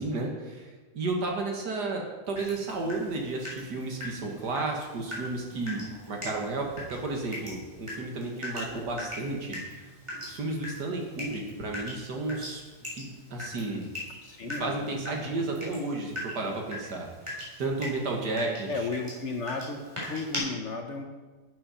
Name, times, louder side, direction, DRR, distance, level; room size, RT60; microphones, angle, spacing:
voice 1, 0.0-5.8 6.1-12.6 12.9-13.8 14.4-17.1 17.6-18.9, right 3 dB, 70° right, 0 dB, 2.3 m, -33 dB
Water tap faucet / Drip, 2.4-20.4, left 1 dB, 15° right, 3.6 m, -41 dB
voice 2, 14.2-15.6 18.7-19.8 20.1-21.0, left 3 dB, 50° left, 4 dB, 1.0 m, -35 dB
11.0 x 9.0 x 4.3 m, 1.3 s
omnidirectional pair, 1.8 m